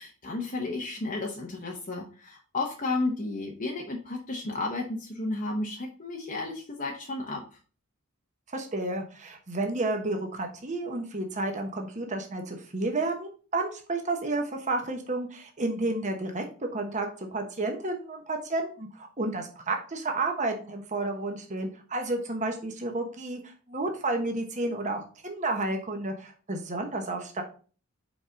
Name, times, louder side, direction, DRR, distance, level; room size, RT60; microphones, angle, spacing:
voice 1, 0.0-7.4, left 2 dB, 40° left, -1 dB, 0.8 m, -33 dB
voice 2, 8.5-16.4 16.7-27.4, right 2 dB, 35° right, 3 dB, 1.0 m, -31 dB
5.2 x 4.8 x 3.7 m, 0.38 s
head